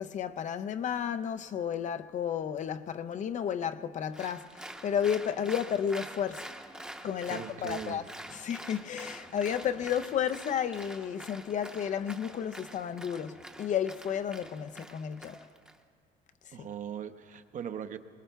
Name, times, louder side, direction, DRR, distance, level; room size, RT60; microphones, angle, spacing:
voice 1, 0.0-6.5 7.0-8.0 8.3-15.4 16.6-16.7, left 8 dB, 45° left, 0.4 m, -32 dB
Applause, 4.1-15.8, right 1 dB, 5° right, 0.7 m, -46 dB
voice 2, 7.3-8.1 16.5-18.0, right 8 dB, 50° right, 0.7 m, -40 dB
22.5 x 19.5 x 2.3 m
cardioid pair, 110°, 17 cm